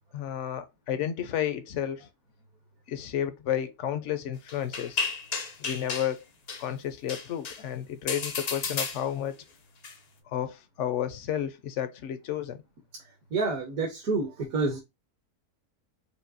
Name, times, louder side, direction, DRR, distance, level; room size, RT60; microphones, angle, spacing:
voice 1, 0.1-2.1 2.9-5.0 5.6-6.2 6.6-9.4 10.3-12.6, left 10 dB, 65° left, 0.7 m, -32 dB
sound 1, 4.5-6.1 6.5-6.7 7.1-7.6 8.1-9.3 9.8-9.9, left 4 dB, 90° left, 0.3 m, -33 dB
voice 2, 13.3-14.8, right 3 dB, 65° right, 1.5 m, -28 dB
5.1 x 2.6 x 2.5 m
omnidirectional pair, 1.6 m